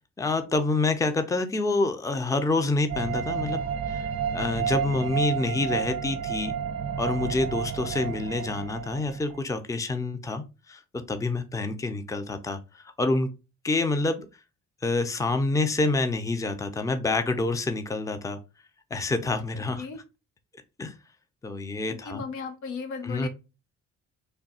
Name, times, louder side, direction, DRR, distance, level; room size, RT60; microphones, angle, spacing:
voice 1, 0.2-4.1 4.3-6.6 7.0-10.8 11.1-13.3 13.6-14.3 14.8-18.4 18.9-19.9 20.8-20.9 21.4-22.2 23.0-23.3, left 3 dB, 10° left, 8 dB, 0.5 m, -27 dB
sound 1, 2.9-9.4, right 8 dB, 60° right, 0.6 m, -31 dB
voice 2, 21.9-23.3, left 5 dB, 80° left, 8 dB, 0.8 m, -35 dB
3.4 x 2.3 x 4.1 m, 0.28 s
cardioid pair, 90°, 30 cm